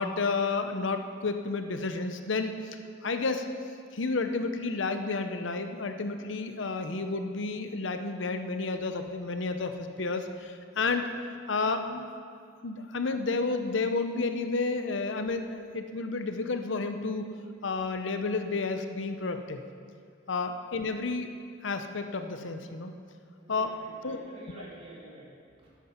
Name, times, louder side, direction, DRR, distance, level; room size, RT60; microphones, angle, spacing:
voice 1, 0.0-3.5 3.9-11.1 11.5-12.1 12.6-17.3 17.6-19.6 20.3-21.3 21.6-22.9 23.5-23.7 24.0-24.2, left 3 dB, 75° left, 7 dB, 0.8 m, -31 dB
voice 2, 23.4-25.3 25.6-25.7, right 1 dB, 30° right, -6 dB, 3.3 m, -49 dB
13.0 x 9.6 x 5.8 m, 2.3 s
head